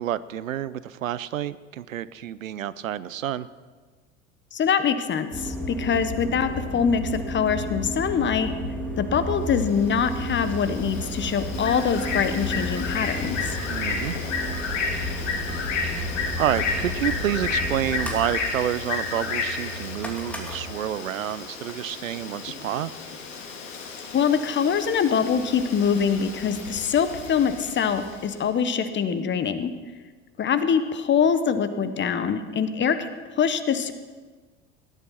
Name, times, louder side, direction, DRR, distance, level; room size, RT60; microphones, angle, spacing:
voice 1, 0.0-3.5 13.7-14.2 15.8-15.9 16.4-22.9, right 11 dB, 85° right, 17 dB, 0.6 m, -29 dB
voice 2, 4.5-8.5 9.0-13.6 24.1-29.7 30.4-33.1 33.4-33.9, left 7 dB, 30° left, 11 dB, 1.2 m, -24 dB
sound 1, 5.3-20.7, left 1 dB, 5° left, 2.8 m, -32 dB
Bird, 9.6-28.3, left 4 dB, 70° left, 2.5 m, -32 dB
17.0 x 11.0 x 5.9 m, 1.4 s
hypercardioid pair, 80°, 39 cm